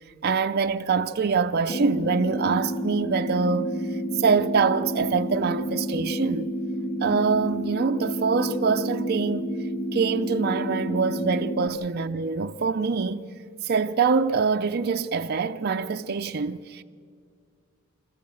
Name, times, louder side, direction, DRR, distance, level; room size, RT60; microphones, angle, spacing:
voice 1, 0.2-3.7 4.2-6.5 7.0-9.5 9.9-13.3 13.6-16.8, right 5 dB, 50° right, 0.5 m, -24 dB
sound 1, 1.7-11.7, equal, 30° left, 0.9 m, -30 dB
26.0 x 14.5 x 7.7 m
head